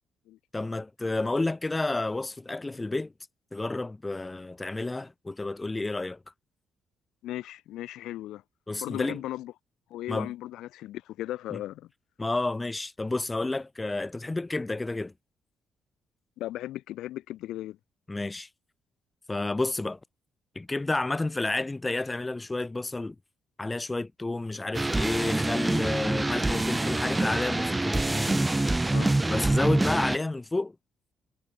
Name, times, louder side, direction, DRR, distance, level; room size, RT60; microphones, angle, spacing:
voice 1, 0.5-3.1 3.5-6.2 8.7-9.2 10.1-10.3 11.5-11.6 12.2-15.1 18.1-18.5 19.3-20.0 20.6-23.2 23.6-28.5 29.3-30.7, left 2 dB, 15° left, 0.3 m, -30 dB
voice 2, 7.2-8.4 8.8-9.5 9.9-11.9 16.4-17.8 28.9-29.1, left 14 dB, 85° left, 0.5 m, -36 dB
sound 1, 24.7-30.2, right 2 dB, 15° right, 0.7 m, -26 dB
cardioid pair, 90°, 0 cm